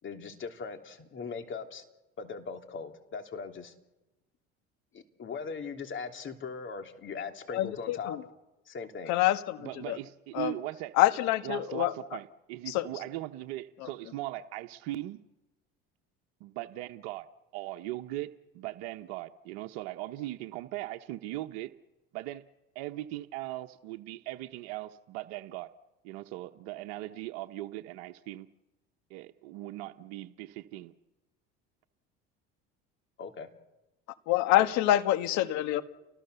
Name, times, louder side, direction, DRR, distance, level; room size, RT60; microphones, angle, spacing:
voice 1, 0.0-1.8 2.2-3.7 4.9-8.2 8.6-9.1 33.2-33.5 34.6-34.7, left 5 dB, 40° left, 5 dB, 3.2 m, -39 dB
voice 2, 7.5-8.2 9.1-10.0 10.3-10.5 10.9-11.9 12.7-12.9 13.8-13.9 34.3-35.8, left 14 dB, 65° left, 10 dB, 1.7 m, -26 dB
voice 3, 9.6-10.9 11.4-15.2 16.4-17.3 17.5-18.3 18.5-21.7 22.1-22.4 22.7-25.7 26.0-28.5 29.1-30.9, right 16 dB, 70° right, 5 dB, 1.1 m, -39 dB
30.0 x 20.0 x 6.9 m, 1.0 s
supercardioid pair, 85°, 30 cm